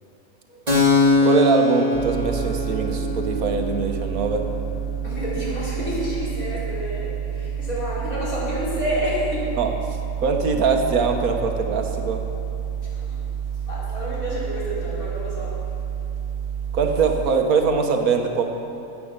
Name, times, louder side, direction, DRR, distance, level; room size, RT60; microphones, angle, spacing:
Keyboard (musical), 0.7-8.0, left 3 dB, 30° right, 1.8 m, -24 dB
voice 1, 1.2-4.4 9.6-9.7 10.2-12.2 16.7-18.4, right 5 dB, 80° right, 4 dB, 1.6 m, -22 dB
sound 1, 1.9-17.3, right 8 dB, 50° right, 0.5 m, -29 dB
voice 2, 5.0-9.5 12.9-13.0 13.7-15.6, equal, 75° left, -8 dB, 4.2 m, -29 dB
14.5 x 8.4 x 6.7 m, 2.8 s
omnidirectional pair, 1.5 m